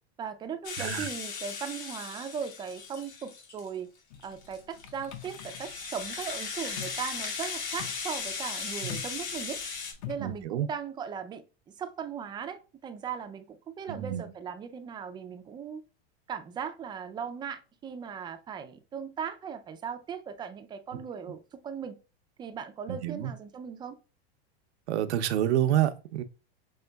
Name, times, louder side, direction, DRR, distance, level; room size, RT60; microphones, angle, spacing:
voice 1, 0.2-3.9 4.2-9.6 10.1-11.4 11.8-15.8 16.3-21.9 22.4-24.0, right 7 dB, 15° right, 0.3 m, -38 dB
Rattle (instrument), 0.6-3.7 4.2-9.9, left 5 dB, 85° left, 2.3 m, -37 dB
voice 2, 0.8-1.1 8.8-9.0 10.2-10.7 13.9-14.2 22.9-23.3 24.9-26.2, right 11 dB, 90° right, 0.7 m, -28 dB
sound 1, 4.1-10.4, left 9 dB, 50° left, 0.8 m, -45 dB
6.4 x 3.6 x 2.2 m
supercardioid pair, 140°, 32 cm